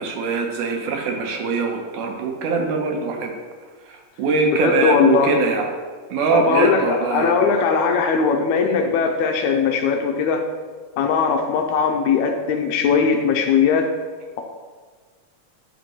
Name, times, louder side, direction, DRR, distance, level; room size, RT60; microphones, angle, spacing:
voice 1, 0.0-3.3 4.2-5.7 6.1-7.4, right 4 dB, 80° right, 2 dB, 2.3 m, -22 dB
voice 2, 4.5-5.4 6.3-10.4 11.0-13.9, left 5 dB, 80° left, 3 dB, 1.9 m, -19 dB
12.0 x 4.5 x 3.0 m, 1.5 s
omnidirectional pair, 3.6 m